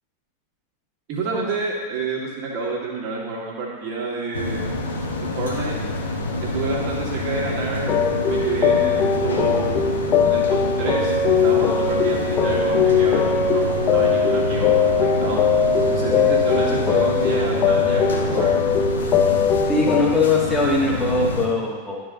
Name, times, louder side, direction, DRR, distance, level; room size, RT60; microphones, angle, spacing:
voice 1, 1.1-4.7 5.4-5.8 6.5-7.9 8.3-9.8 10.2-11.2 11.4-15.4 15.9-18.5, right 3 dB, 45° right, -3 dB, 2.6 m, -29 dB
sound 1, 4.3-21.5, left 2 dB, 65° left, 1.2 m, -27 dB
sound 2, 7.9-20.0, left 5 dB, 30° left, 0.6 m, -20 dB
voice 2, 19.7-22.0, left 3 dB, 10° left, -3 dB, 1.9 m, -21 dB
12.5 x 4.8 x 3.9 m, 1.4 s
figure-of-eight pair, 90°, 0 cm